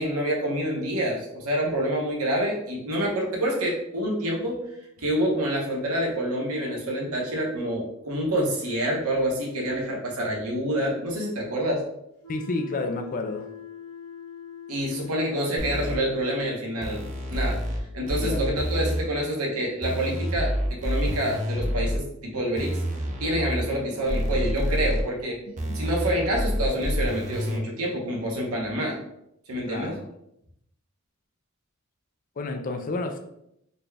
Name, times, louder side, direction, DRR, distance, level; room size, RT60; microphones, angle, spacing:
voice 1, 0.0-4.6 5.0-11.8 14.7-17.6 17.9-22.8 23.2-25.4 25.7-29.0 29.5-30.0, right 1 dB, 80° right, -2 dB, 1.1 m, -27 dB
sound 1, 12.2-16.5, left 7 dB, 80° left, 1.3 m, -42 dB
voice 2, 12.3-13.5 18.2-18.4 25.7-25.8 29.7-30.1 32.4-33.2, left 2 dB, 40° left, 6 dB, 0.4 m, -30 dB
sound 2, 15.6-16.0 16.8-17.8 18.1-19.0 19.8-22.0 22.6-23.6 24.1-25.0 25.6-27.6, equal, 35° right, 0.6 m, -28 dB
4.0 x 2.3 x 3.3 m, 0.78 s
head